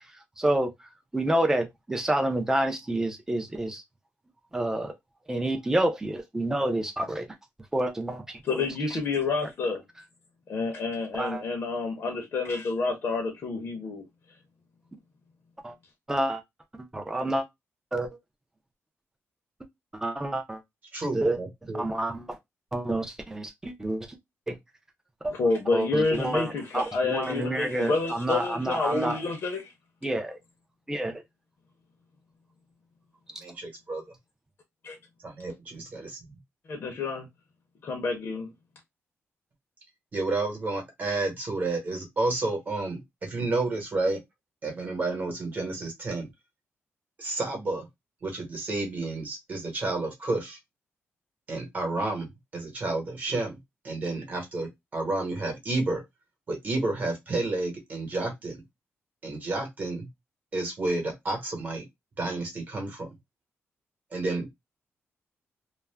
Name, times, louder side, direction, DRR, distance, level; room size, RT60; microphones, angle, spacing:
voice 1, 0.4-0.7 1.1-3.8 4.5-4.9 5.3-7.3 7.7-9.0 11.1-11.4 15.6-15.7 16.1-16.4 16.8-17.4 17.9-18.1 19.9-20.6 21.1-21.4 21.7-22.4 22.7-24.2 24.5-24.6 25.2-25.3 25.7-29.2 30.0-30.4 30.9-31.2, right 1 dB, 10° right, 0.4 m, -28 dB
voice 2, 8.4-9.8 10.5-14.1 25.3-29.7 34.8-35.0 36.7-37.3 37.8-38.5, left 3 dB, 50° left, 0.7 m, -29 dB
voice 3, 20.9-21.9 33.4-34.0 35.2-36.4 40.1-44.2 44.6-46.3 47.2-47.9 48.2-50.6 51.5-52.3 52.5-53.6 53.8-56.0 56.5-58.6 59.2-60.1 60.5-61.8 62.2-63.1 64.1-64.5, right 2 dB, 35° right, 1.0 m, -30 dB
2.4 x 2.1 x 3.2 m
wide cardioid pair, 170°, 5 cm